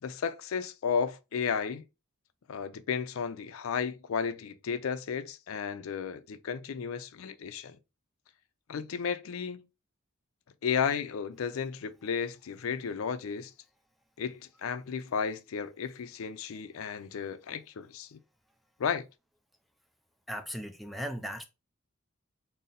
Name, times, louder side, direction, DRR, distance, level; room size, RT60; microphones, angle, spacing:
voice 1, 0.0-1.8 2.5-7.8 8.7-9.6 10.6-13.5 14.2-18.2 18.8-19.0, left 6 dB, 75° left, 0.4 m, -33 dB
voice 2, 20.3-21.4, equal, ahead, 0.4 m, -37 dB
3.8 x 2.0 x 4.0 m
head